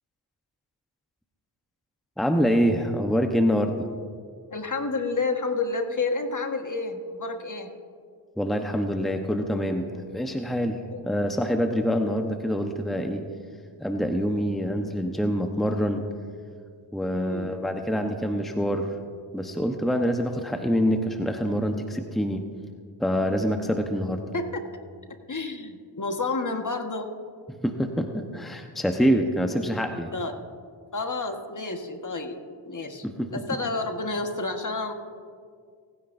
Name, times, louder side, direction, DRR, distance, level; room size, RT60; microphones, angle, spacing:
voice 1, 2.2-3.9 8.4-13.3 13.8-16.1 16.9-18.9 19.3-22.4 23.0-24.2 27.6-30.1 33.0-33.3, equal, ahead, 5 dB, 1.0 m, -26 dB
voice 2, 4.5-7.7 10.9-11.1 17.1-17.6 24.3-24.6 25.3-27.1 30.1-30.4 30.9-32.4 32.6-33.0 33.3-34.9, left 3 dB, 40° left, 5 dB, 1.5 m, -30 dB
24.5 x 9.9 x 2.7 m, 2.1 s
cardioid pair, 40°, 47 cm